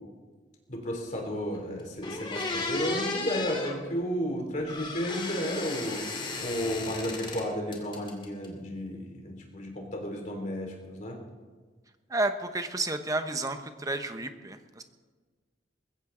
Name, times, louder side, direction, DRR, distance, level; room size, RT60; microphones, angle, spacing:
voice 1, 0.7-6.0 6.4-11.2, equal, 45° left, 1 dB, 3.3 m, -33 dB
sound 1, 1.5-1.6 2.0-3.8 4.7-7.4 7.7-8.5, left 3 dB, 25° left, 2.4 m, -34 dB
voice 2, 12.1-14.8, right 2 dB, 20° right, 8 dB, 1.0 m, -31 dB
21.0 x 15.5 x 3.9 m, 1.4 s
head